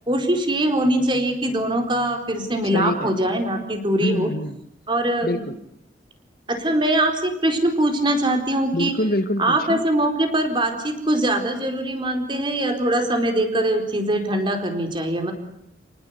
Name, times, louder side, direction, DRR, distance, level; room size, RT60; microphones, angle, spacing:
voice 1, 0.1-4.3 4.9-5.4 6.5-8.9 9.4-15.3, right 1 dB, 25° right, 5 dB, 4.4 m, -22 dB
voice 2, 2.7-3.3 4.0-4.6 5.2-5.6 8.7-9.8, left 1 dB, 55° left, 9 dB, 1.9 m, -25 dB
30.0 x 19.0 x 8.3 m, 0.74 s
head